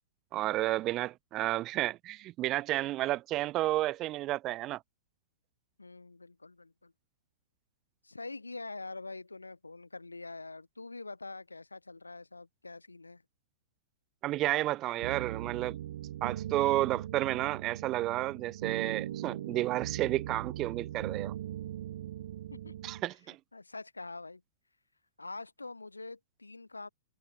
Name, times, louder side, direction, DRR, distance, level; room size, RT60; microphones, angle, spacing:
voice 1, 0.3-4.8 14.2-15.8 16.2-21.3 22.8-23.4, right 16 dB, 30° right, 0.7 m, -31 dB
voice 2, 5.8-6.9 8.0-13.2 22.5-22.9 23.3-24.4 25.2-26.9, left 3 dB, 80° left, 4.2 m, -45 dB
sound 1, 15.0-23.0, right 12 dB, 55° right, 4.9 m, -40 dB
figure-of-eight pair, 110°, 0 cm